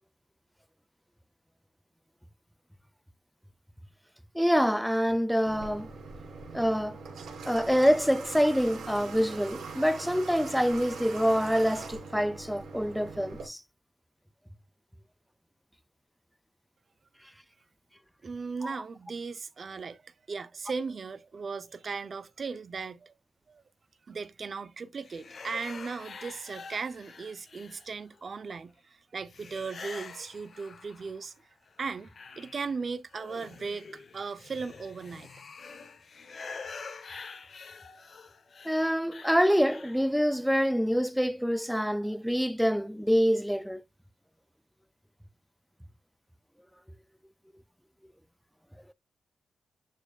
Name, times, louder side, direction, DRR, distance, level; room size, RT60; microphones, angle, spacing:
voice 1, 4.3-5.9 6.5-7.0 7.4-13.6 18.6-18.7 38.6-43.8, equal, ahead, 0.3 m, -26 dB
Water / Water tap faucet, 5.4-13.5, right 4 dB, 80° right, 3.5 m, -42 dB
voice 2, 18.2-23.1 23.5-23.6 24.1-31.3 31.8-32.1 32.4-35.4, right 5 dB, 40° right, 0.6 m, -37 dB
sound 1, 25.0-28.2 29.3-31.3 31.7-40.1, left 5 dB, 45° left, 0.9 m, -46 dB
11.0 x 4.6 x 2.3 m
wide cardioid pair, 140°, 0 cm